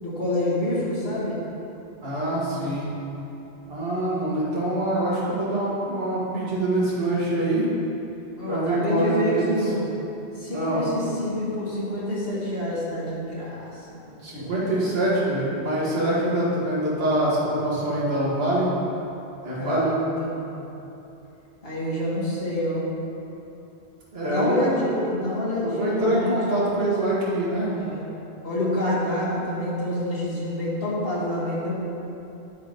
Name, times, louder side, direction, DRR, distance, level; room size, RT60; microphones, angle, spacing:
voice 1, 0.0-1.4 8.3-9.9 10.4-14.6 19.6-20.6 21.6-22.8 24.3-26.4 27.7-28.1 28.4-31.7, left 1 dB, 60° left, -7 dB, 2.1 m, -27 dB
voice 2, 2.0-2.9 3.7-7.7 8.5-9.6 10.5-10.8 14.2-18.7 19.4-19.9 24.1-24.7 25.6-27.7, right 1 dB, 65° right, -8 dB, 1.9 m, -24 dB
10.5 x 3.9 x 5.2 m, 2.9 s
omnidirectional pair, 1.1 m